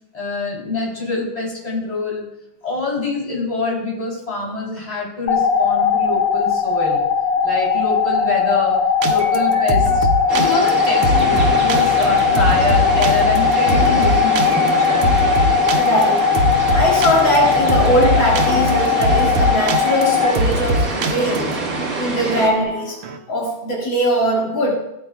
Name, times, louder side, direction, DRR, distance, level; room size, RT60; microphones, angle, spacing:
voice 1, 0.1-2.3 2.6-7.0 7.4-10.1 10.3-15.1, left 3 dB, 20° left, -4 dB, 3.4 m, -25 dB
sound 1, 5.3-20.3, left 6 dB, 90° left, 1.6 m, -18 dB
sound 2, 9.0-23.2, equal, 85° right, 1.7 m, -23 dB
sound 3, 10.3-22.5, right 2 dB, 45° right, 1.9 m, -26 dB
voice 2, 15.8-16.4 16.7-21.6 22.0-23.0 23.3-24.7, equal, 65° left, -4 dB, 2.8 m, -20 dB
16.5 x 8.6 x 2.4 m, 0.83 s
omnidirectional pair, 2.3 m